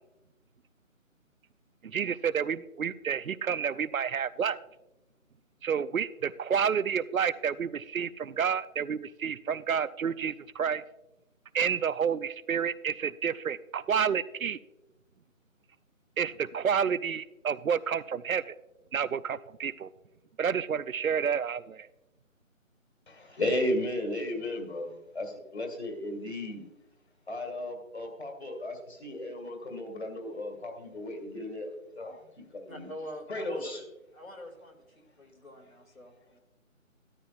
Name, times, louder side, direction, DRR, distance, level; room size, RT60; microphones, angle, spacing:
voice 1, 1.8-4.6 5.6-10.8 11.5-14.6 16.2-18.6 18.9-19.9 20.4-21.9, right 7 dB, 80° right, 18 dB, 0.5 m, -30 dB
voice 2, 23.1-26.6 27.3-31.7 32.0-32.1 32.5-32.9 33.3-33.8, left 1 dB, 50° left, 3 dB, 2.2 m, -34 dB
voice 3, 32.7-33.8 34.1-34.8 35.2-36.4, equal, 75° left, 1 dB, 2.6 m, -45 dB
12.5 x 11.0 x 2.5 m, 0.96 s
figure-of-eight pair, 160°, 41 cm